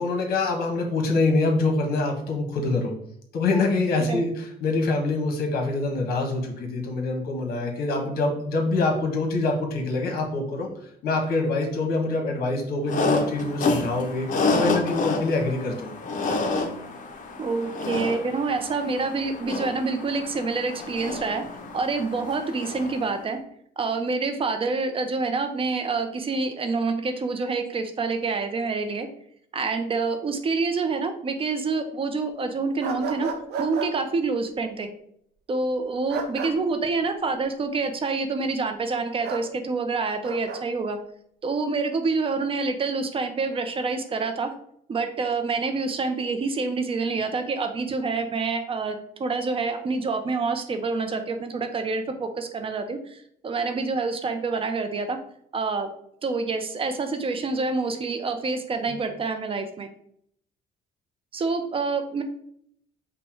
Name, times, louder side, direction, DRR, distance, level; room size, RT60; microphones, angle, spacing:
voice 1, 0.0-2.9 3.3-10.7 11.0-16.0 58.9-59.0, left 3 dB, 65° left, 2 dB, 1.3 m, -25 dB
sound 1, 12.9-23.2, left 3 dB, 50° left, 0.7 m, -29 dB
voice 2, 17.4-21.4 21.7-23.4 23.8-29.1 29.5-33.3 33.6-34.9 35.5-41.0 41.4-44.5 44.9-53.2 53.4-55.2 55.5-55.9 56.2-59.9 61.3-62.2, right 4 dB, 35° right, 7 dB, 0.6 m, -27 dB
sound 2, 32.8-33.9 36.1-36.5 39.2-39.5 40.2-40.6, right 5 dB, 75° right, 0.7 m, -32 dB
5.4 x 2.2 x 4.4 m, 0.69 s
cardioid pair, 110°, 17 cm